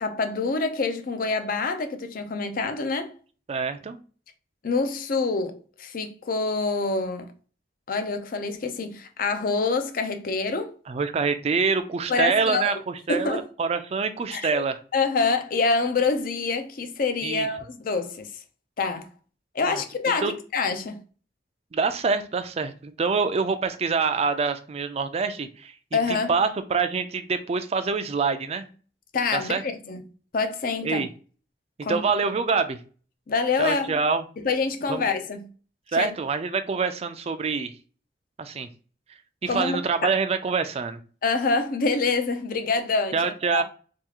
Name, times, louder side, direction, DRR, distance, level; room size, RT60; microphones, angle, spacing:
voice 1, 0.0-3.1 4.6-7.3 7.9-10.7 12.1-12.7 13.1-13.4 14.3-14.6 14.9-18.3 18.8-19.1 19.5-21.0 25.9-26.3 29.1-30.0 30.3-31.0 31.8-32.0 33.3-33.9 34.4-35.5 35.9-36.1 39.5-39.8 40.0-40.1 41.2-43.6, left 4 dB, 50° left, 0.5 m, -26 dB
voice 2, 3.5-4.0 10.9-14.8 17.2-17.5 19.7-19.8 20.2-20.3 21.7-28.7 29.3-29.6 30.8-31.1 31.9-32.8 33.6-34.2 34.9-35.0 35.9-37.7 38.4-38.7 39.4-41.0 43.1-43.6, right 5 dB, 35° right, 0.4 m, -26 dB
3.5 x 2.4 x 2.9 m
head